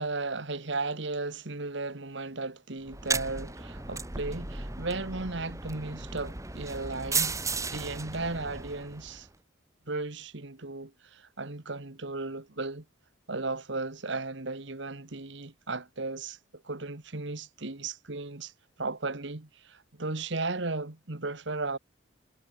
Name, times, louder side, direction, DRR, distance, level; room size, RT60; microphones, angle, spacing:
voice 1, 0.0-7.4 7.7-9.3 9.9-12.8 13.3-18.5 18.8-21.8, right 3 dB, 65° right, 1.6 m, -35 dB
sound 1, 2.9-9.3, right 4 dB, 15° right, 1.7 m, -35 dB
head